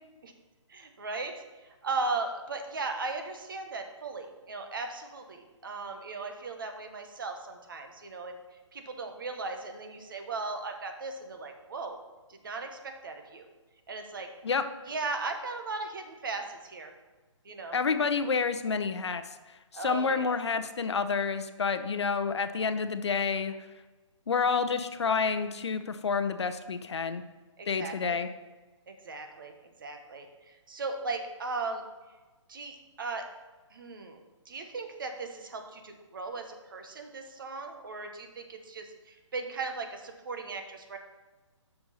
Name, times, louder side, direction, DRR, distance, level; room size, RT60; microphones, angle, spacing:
voice 1, 0.7-8.4 8.7-12.0 12.3-13.5 13.9-14.3 14.9-16.9 17.4-17.8 19.7-20.4 27.6-28.2 28.9-29.5 29.8-31.8 32.5-33.2 33.7-34.2 34.5-41.0, right 3 dB, 45° right, 5 dB, 1.2 m, -37 dB
voice 2, 17.7-19.2 19.7-23.7 24.3-27.2 27.7-28.3, left 5 dB, 60° left, 10 dB, 0.7 m, -29 dB
7.8 x 6.2 x 5.6 m, 1.2 s
hypercardioid pair, 175°, 16 cm